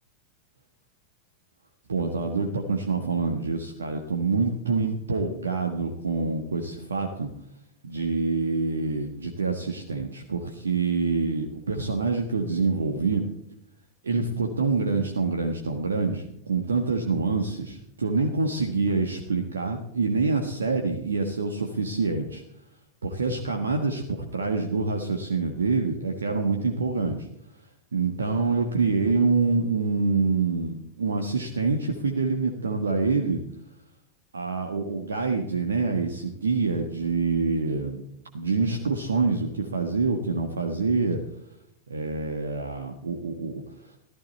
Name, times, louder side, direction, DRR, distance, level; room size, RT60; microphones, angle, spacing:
voice 1, 1.9-7.3 7.8-13.2 14.0-22.4 23.0-27.3 27.9-33.4 34.3-38.0 38.3-41.2 41.9-44.0, right 4 dB, 70° right, 4 dB, 1.5 m, -26 dB
15.0 x 14.0 x 4.3 m, 0.78 s
figure-of-eight pair, 90°, 0 cm